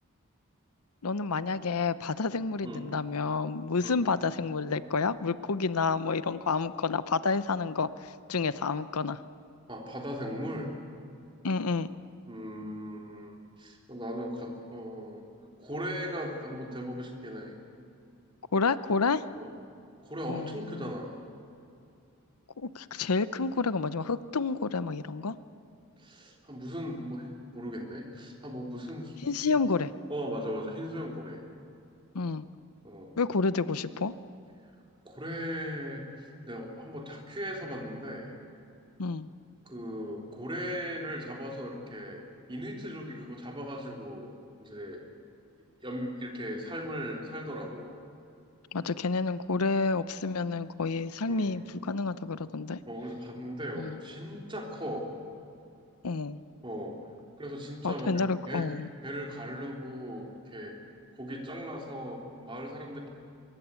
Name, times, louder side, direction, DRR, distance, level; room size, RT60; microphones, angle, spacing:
voice 1, 1.0-9.2 11.4-11.9 18.5-19.2 20.3-20.9 22.6-25.4 29.2-29.9 32.1-32.5 33.2-34.1 39.0-39.3 48.7-52.8 53.8-54.0 56.0-56.4 57.8-58.9, left 4 dB, 85° left, 14 dB, 0.8 m, -29 dB
voice 2, 9.7-10.7 12.3-15.2 15.6-17.5 19.4-19.5 20.0-21.2 26.0-29.2 30.1-31.4 32.8-33.1 35.0-36.1 36.4-38.3 39.6-42.2 42.5-44.3 44.6-45.0 45.8-48.0 51.3-51.6 52.9-55.1 56.6-57.0 57.4-58.7 59.0-60.7 61.1-63.1, equal, 20° right, 0 dB, 3.4 m, -38 dB
24.5 x 23.0 x 8.3 m, 2.6 s
head